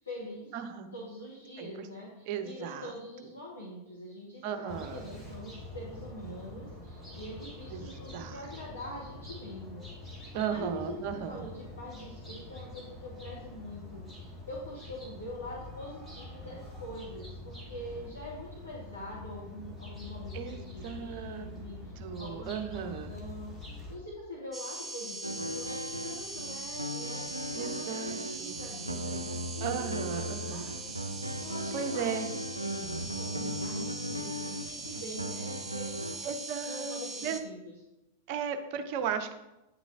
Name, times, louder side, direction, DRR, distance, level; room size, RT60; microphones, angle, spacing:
voice 1, 0.0-0.6 0.9-10.1 10.4-10.8 11.1-36.4 36.6-37.7, left 1 dB, 75° left, -6 dB, 1.6 m, -44 dB
voice 2, 0.5-0.9 1.6-1.7 2.3-2.9 4.4-5.1 7.7-7.9 8.1-8.4 10.3-11.4 20.3-21.5 22.0-23.1 27.5-28.6 29.6-30.7 31.7-32.3 36.2-37.4 38.3-39.3, right 7 dB, 45° right, 8 dB, 0.7 m, -36 dB
sound 1, 4.7-23.9, left 2 dB, 10° left, 2.1 m, -45 dB
sound 2, 24.5-37.4, right 2 dB, 15° right, 0.8 m, -41 dB
sound 3, 25.2-36.2, equal, 85° right, 0.4 m, -37 dB
9.6 x 6.0 x 2.6 m, 0.95 s
figure-of-eight pair, 90°, 0 cm